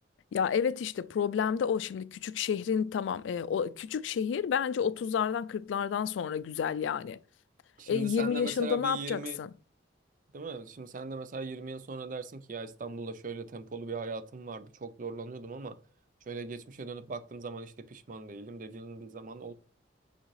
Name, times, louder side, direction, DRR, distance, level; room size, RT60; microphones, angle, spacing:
voice 1, 0.3-7.2 7.9-9.5, left 7 dB, 85° left, 0.3 m, -30 dB
voice 2, 7.8-9.4 10.3-15.8 16.3-19.5, right 3 dB, 45° right, 0.5 m, -39 dB
6.3 x 5.6 x 3.1 m
head